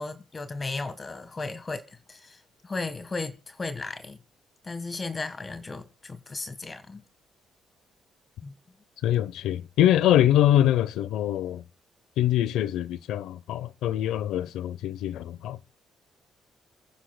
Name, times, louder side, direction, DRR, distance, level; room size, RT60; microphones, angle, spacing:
voice 1, 0.0-4.2 4.6-7.0 8.4-8.5, left 3 dB, 30° left, 1.5 m, -35 dB
voice 2, 9.0-11.6 12.2-15.6, left 12 dB, 85° left, 0.8 m, -24 dB
28.5 x 10.5 x 2.3 m
cardioid pair, 90°, 0 cm